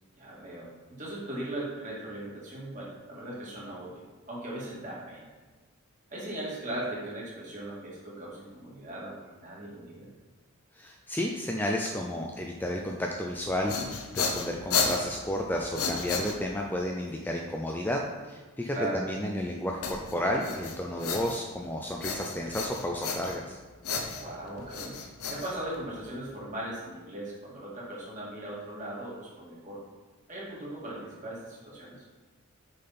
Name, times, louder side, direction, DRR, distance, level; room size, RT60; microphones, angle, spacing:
voice 1, 0.2-5.2 6.1-10.1 18.7-19.0 24.2-25.0 25.3-29.8 30.3-32.1, right 1 dB, 35° right, -5 dB, 2.1 m, -38 dB
voice 2, 10.8-13.7 14.1-23.6, left 1 dB, 10° left, 0 dB, 0.4 m, -32 dB
sound 1, 13.4-16.8 19.8-21.7 22.0-23.5 23.8-26.1, left 4 dB, 80° left, 0.9 m, -33 dB
6.5 x 5.7 x 4.2 m, 1.3 s
head